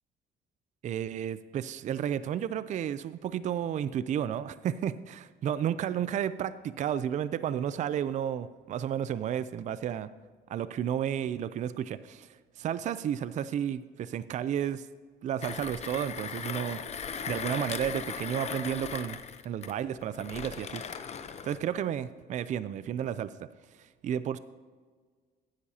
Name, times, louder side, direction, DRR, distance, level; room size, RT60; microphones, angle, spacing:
voice 1, 0.8-10.1 10.5-12.3 12.6-14.9 15.2-16.8 17.3-19.2 19.4-20.8 21.4-23.3 23.8-24.4, right 9 dB, 45° right, 15 dB, 0.4 m, -32 dB
Mechanisms, 15.4-21.6, left 7 dB, 40° left, 0.8 m, -38 dB
15.5 x 10.0 x 2.8 m, 1.6 s
cardioid pair, 110°, 17 cm